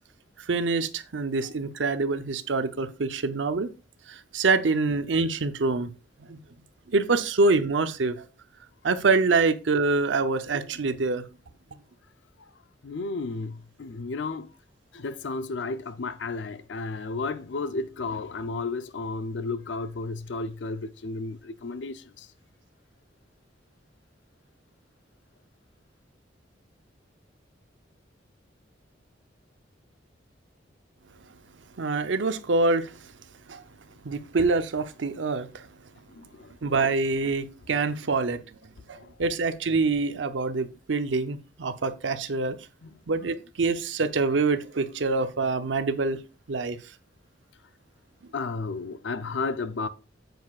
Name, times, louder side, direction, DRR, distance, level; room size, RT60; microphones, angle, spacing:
voice 1, 0.4-3.7 4.1-5.9 6.2-6.4 6.9-8.3 8.8-11.2 31.8-33.1 33.5-33.6 34.0-35.7 36.6-38.4 38.9-42.6 43.1-46.2 46.5-46.8, right 3 dB, 75° right, 0.7 m, -25 dB
voice 2, 12.8-14.5 14.9-22.3 36.1-36.5 38.9-39.1 42.8-42.9 48.3-49.9, left 3 dB, 70° left, 0.5 m, -33 dB
9.4 x 7.9 x 2.4 m
head